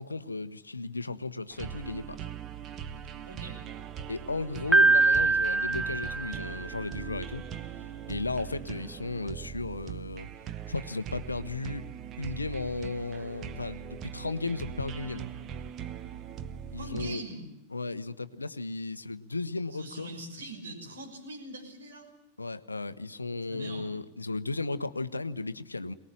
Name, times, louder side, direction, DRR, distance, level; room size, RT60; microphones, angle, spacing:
voice 1, 0.0-2.2 4.1-7.4 8.1-10.3 10.7-11.9 12.2-15.3 16.7-17.2 17.7-20.1 22.4-25.9, left 3 dB, 80° left, 13 dB, 1.0 m, -35 dB
sound 1, 1.5-17.1, right 8 dB, 30° right, 1.2 m, -41 dB
voice 2, 3.3-3.6 16.8-17.5 19.7-22.1 23.5-23.9, right 1 dB, 70° right, 1 dB, 6.3 m, -42 dB
Piano, 4.7-6.8, right 3 dB, ahead, 1.0 m, -23 dB
23.0 x 20.0 x 8.8 m, 0.94 s
figure-of-eight pair, 90°, 0 cm